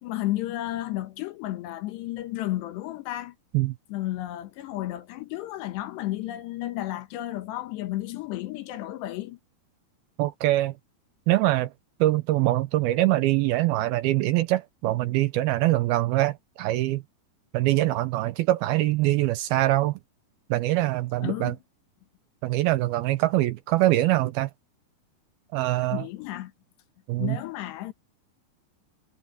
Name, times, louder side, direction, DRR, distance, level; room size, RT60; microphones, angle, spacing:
voice 1, 0.0-3.4 3.9-9.4 21.2-21.6 25.9-26.5 27.2-27.9, left 15 dB, 80° left, 3.4 m, -32 dB
voice 2, 10.2-10.7 11.3-11.7 12.0-17.0 17.5-20.0 20.5-21.5 22.4-24.5 25.5-26.0 27.1-27.4, right 16 dB, 80° right, 2.3 m, -23 dB
omnidirectional pair, 4.9 m